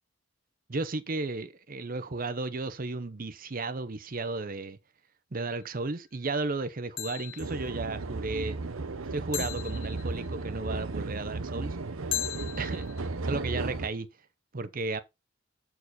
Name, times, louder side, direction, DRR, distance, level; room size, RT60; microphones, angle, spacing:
voice 1, 0.7-4.8 5.3-8.6 9.1-11.8 12.6-12.9 13.2-14.1 14.5-15.0, right 3 dB, 45° right, 0.8 m, -34 dB
sound 1, 5.4-5.8 7.0-7.7 9.3-10.4 12.1-13.1, left 12 dB, 60° left, 0.8 m, -37 dB
sound 2, 7.4-13.9, right 3 dB, 90° right, 0.8 m, -34 dB
8.2 x 4.6 x 4.1 m
head